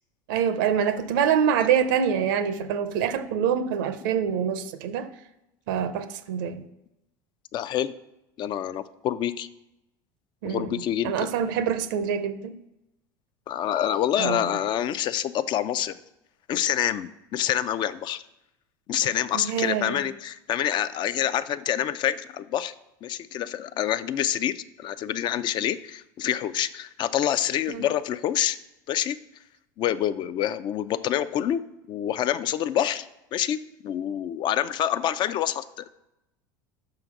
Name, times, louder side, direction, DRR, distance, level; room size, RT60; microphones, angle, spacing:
voice 1, 0.3-5.1 5.7-6.6 10.4-12.6 14.2-14.5 19.3-20.0 27.7-27.9, right 8 dB, 80° right, 0.6 m, -25 dB
voice 2, 7.5-7.9 8.4-9.5 10.4-11.3 13.5-16.0 16.5-18.2 18.9-22.7 23.0-28.6 28.9-29.2 29.8-31.6 31.9-35.9, left 10 dB, 45° left, 0.4 m, -27 dB
5.8 x 3.9 x 6.0 m
supercardioid pair, 100°, 10 cm